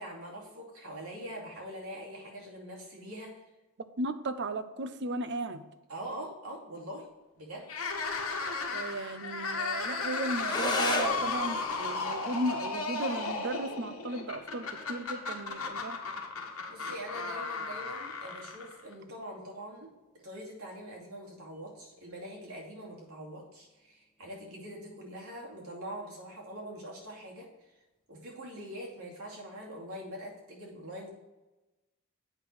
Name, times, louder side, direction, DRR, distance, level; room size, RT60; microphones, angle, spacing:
voice 1, 0.0-3.4 5.9-7.1 7.4-7.7 16.7-19.9 20.2-27.5 28.1-31.1, equal, 85° right, -3 dB, 2.5 m, -43 dB
voice 2, 4.0-5.6 8.7-16.0, right 1 dB, 55° right, 11 dB, 0.6 m, -35 dB
sound 1, 7.6-18.9, left 4 dB, 80° left, 1.2 m, -35 dB
sound 2, 10.4-19.4, left 2 dB, 20° left, 1.1 m, -39 dB
8.1 x 5.6 x 4.6 m, 1.1 s
head